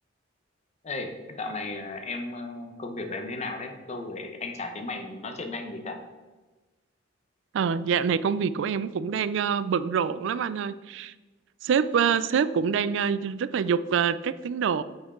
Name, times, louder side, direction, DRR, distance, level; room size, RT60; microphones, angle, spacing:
voice 1, 0.8-6.0, left 3 dB, 35° left, 5 dB, 0.8 m, -35 dB
voice 2, 7.5-11.1 11.6-14.8, right 7 dB, 70° right, 15 dB, 0.3 m, -25 dB
8.5 x 4.5 x 3.6 m, 1.2 s
head